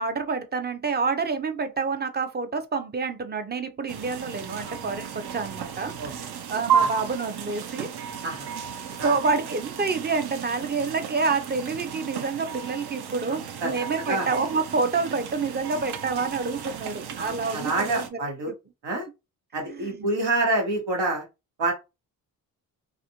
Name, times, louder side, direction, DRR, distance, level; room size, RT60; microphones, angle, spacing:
voice 1, 0.0-6.2 6.5-7.9 9.0-18.2 18.5-18.6 19.6-20.1, right 4 dB, 25° right, 0.5 m, -28 dB
sound 1, 3.9-18.1, right 8 dB, 65° right, 0.6 m, -33 dB
voice 2, 6.0-6.3 6.8-6.9 8.2-8.5 9.0-9.2 13.3-13.7 14.1-14.3 17.2-18.5 18.8-19.1 19.5-21.2 21.6-21.7, right 2 dB, 90° right, 1.4 m, -27 dB
2.5 x 2.4 x 2.9 m
cardioid pair, 80°, 41 cm